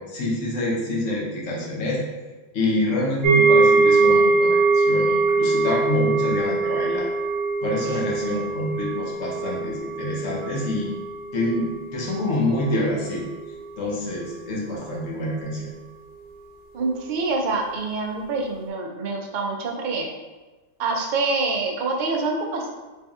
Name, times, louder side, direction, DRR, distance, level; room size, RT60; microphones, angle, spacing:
voice 1, 0.0-2.0 2.5-7.1 7.6-10.9 11.3-13.2 13.8-15.7, left 1 dB, 75° left, -3 dB, 1.1 m, -26 dB
sound 1, 3.2-12.3 12.6-12.9 13.3-13.4, right 3 dB, 80° right, 1.3 m, -22 dB
voice 2, 16.7-20.1 20.8-22.7, right 3 dB, 55° right, 1 dB, 0.5 m, -26 dB
3.3 x 2.6 x 3.5 m, 1.2 s
omnidirectional pair, 1.3 m